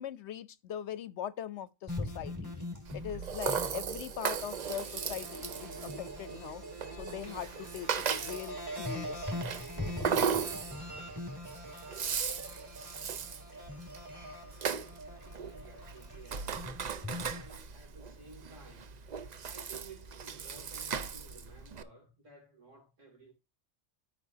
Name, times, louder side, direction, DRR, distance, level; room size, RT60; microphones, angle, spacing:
voice 1, 0.0-2.6 2.9-6.6 7.0-9.5, left 10 dB, 70° left, 0.9 m, -41 dB
sound 1, 1.9-17.5, left 1 dB, 15° right, 2.4 m, -42 dB
Rattle (instrument), 2.9-21.8, right 6 dB, 50° right, 0.6 m, -37 dB
voice 2, 14.9-19.0 19.5-23.3, right 4 dB, 90° right, 3.2 m, -54 dB
13.5 x 4.9 x 2.7 m
omnidirectional pair, 1.2 m